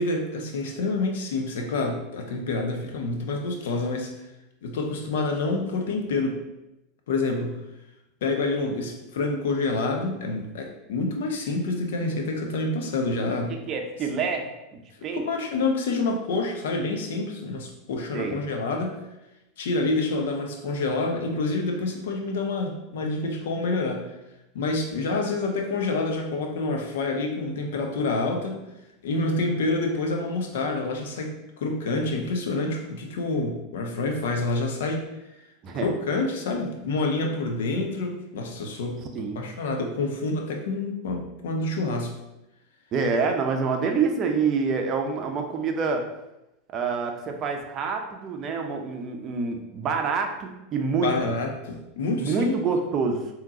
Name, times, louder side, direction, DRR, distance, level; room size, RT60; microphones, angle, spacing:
voice 1, 0.0-4.1 4.6-6.4 7.1-7.6 8.2-13.6 15.1-19.0 19.6-24.1 24.5-28.6 29.0-35.1 35.8-39.0 39.4-42.1 51.0-52.5, left 3 dB, 70° left, 3 dB, 0.6 m, -27 dB
voice 2, 13.7-14.5 15.0-15.2 18.1-18.4 35.6-35.9 39.1-39.4 42.9-46.0 46.7-51.1 52.2-53.2, right 5 dB, 40° right, 4 dB, 0.5 m, -26 dB
3.6 x 2.8 x 2.8 m, 0.93 s
hypercardioid pair, 90°, 0 cm